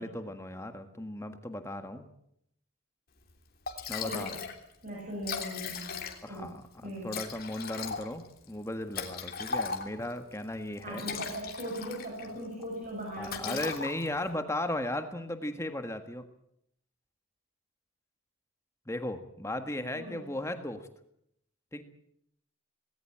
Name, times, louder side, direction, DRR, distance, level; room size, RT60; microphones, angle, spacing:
voice 1, 0.0-2.0 3.9-4.4 6.2-11.1 13.2-16.2 18.9-20.9 21.7-21.8, left 1 dB, 15° left, 8 dB, 1.6 m, -36 dB
Liquid, 3.3-3.4 3.7-4.6 4.9-5.0 5.1-6.4 7.1-10.1 10.8-12.3 12.6-12.9 13.2-14.3, left 5 dB, 45° left, 3.2 m, -37 dB
voice 2, 4.0-4.4 4.8-6.0 6.3-6.5 6.8-7.1 10.8-13.7 19.9-20.2, equal, 40° right, -2 dB, 7.6 m, -39 dB
19.5 x 18.5 x 8.7 m, 0.73 s
head